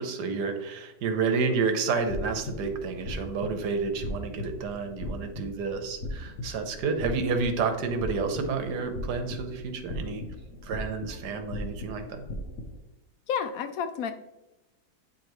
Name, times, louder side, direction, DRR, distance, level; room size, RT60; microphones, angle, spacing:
voice 1, 0.0-10.2 10.6-12.2, right 4 dB, 65° right, 6 dB, 1.4 m, -30 dB
sound 1, 1.9-12.8, left 1 dB, 55° left, 1.1 m, -38 dB
voice 2, 13.3-14.1, left 7 dB, 80° left, 9 dB, 0.7 m, -30 dB
9.0 x 5.1 x 3.1 m, 1.0 s
omnidirectional pair, 2.0 m